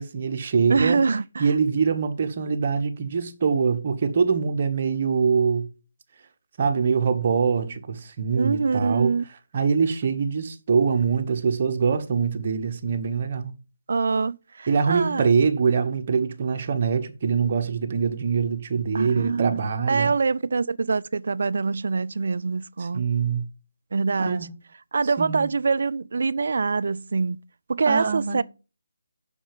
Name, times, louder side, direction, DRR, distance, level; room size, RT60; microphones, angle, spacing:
voice 1, 0.0-1.0 1.4-5.7 6.6-9.1 9.5-13.5 14.7-20.1 22.9-23.4 24.2-24.5 25.2-25.5 27.9-28.4, right 5 dB, 40° right, 1.4 m, -24 dB
voice 2, 0.7-1.5 8.4-9.2 13.9-15.3 18.9-19.5 19.9-23.0 23.9-24.5 24.9-27.4 27.7-28.4, right 4 dB, 60° right, 0.5 m, -24 dB
7.2 x 6.0 x 7.3 m
figure-of-eight pair, 155°, 0 cm